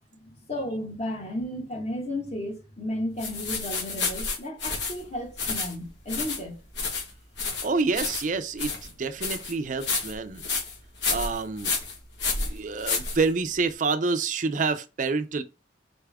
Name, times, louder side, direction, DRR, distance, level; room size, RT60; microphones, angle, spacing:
voice 1, 0.1-6.6, left 1 dB, 40° left, 1.3 m, -33 dB
sound 1, 3.2-13.7, left 4 dB, 80° left, 1.5 m, -31 dB
voice 2, 7.6-10.4 11.1-11.7 12.3-15.4, right 4 dB, 45° right, 0.5 m, -28 dB
4.1 x 3.4 x 3.5 m
head